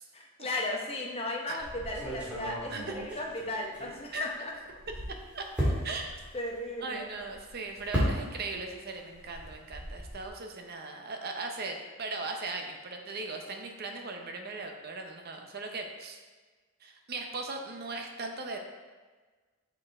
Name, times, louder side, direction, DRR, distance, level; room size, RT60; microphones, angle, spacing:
voice 1, 0.1-4.5 6.3-7.1, left 1 dB, 25° left, 0 dB, 0.8 m, -36 dB
sound 1, 1.6-4.3 4.6-8.7 9.0-10.3, equal, 5° right, 1.8 m, -35 dB
voice 2, 5.3-6.2 6.8-16.2 16.8-18.6, right 3 dB, 45° right, 3 dB, 0.7 m, -38 dB
6.3 x 5.5 x 3.5 m, 1.4 s
head